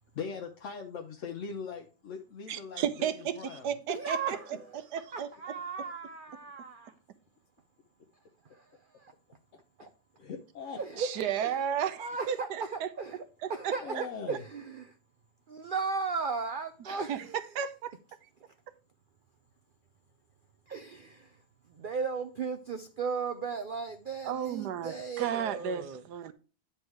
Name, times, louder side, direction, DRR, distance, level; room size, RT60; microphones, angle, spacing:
voice 1, 0.1-3.7 10.2-10.8 13.8-14.4, left 5 dB, 55° left, 1.0 m, -40 dB
voice 2, 2.5-4.4 4.9-5.3 11.0-12.9 16.9-17.2 17.5-17.9 24.2-26.3, right 8 dB, 90° right, 1.3 m, -33 dB
voice 3, 3.9-7.0 8.4-9.1 10.8-11.1 11.4-11.7 12.0-15.0 15.5-17.5 18.5-18.6 20.7-26.0, right 5 dB, 65° right, 0.5 m, -36 dB
9.6 x 4.3 x 4.7 m
omnidirectional pair, 1.7 m